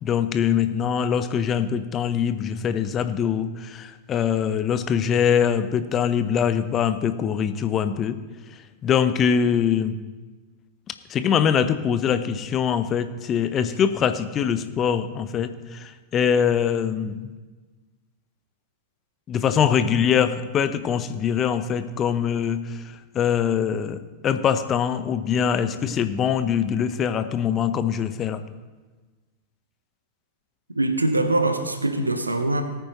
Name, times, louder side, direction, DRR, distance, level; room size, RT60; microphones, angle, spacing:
voice 1, 0.0-8.2 8.8-10.0 11.1-17.3 19.3-22.8 23.1-24.0 24.2-28.4, left 8 dB, 30° left, 11 dB, 0.8 m, -23 dB
voice 2, 30.7-32.6, right 2 dB, 80° right, 8 dB, 1.0 m, -23 dB
19.0 x 9.2 x 3.1 m, 1.3 s
figure-of-eight pair, 90°, 0 cm